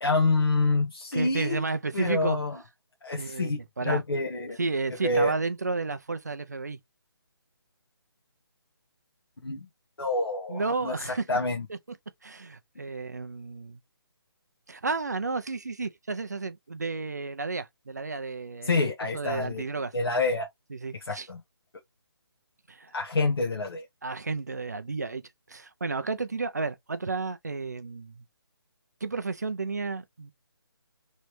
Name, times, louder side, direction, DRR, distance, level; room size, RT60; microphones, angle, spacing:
voice 1, 0.0-1.6 1.9-2.6 3.0-3.6 3.8-4.6 5.0-5.3 9.4-9.7 10.0-11.7 18.6-19.6 19.9-20.5 21.0-21.4 22.9-23.8, left 3 dB, 65° left, 1.0 m, -27 dB
voice 2, 1.1-2.4 3.2-4.0 4.6-6.8 10.5-11.3 11.7-11.8 12.2-13.8 14.7-18.8 19.1-20.2 20.7-21.3 22.7-22.9 24.0-25.2 25.5-28.2 29.0-30.3, right 4 dB, 45° right, 0.4 m, -32 dB
3.2 x 2.7 x 3.0 m
hypercardioid pair, 180°, 13 cm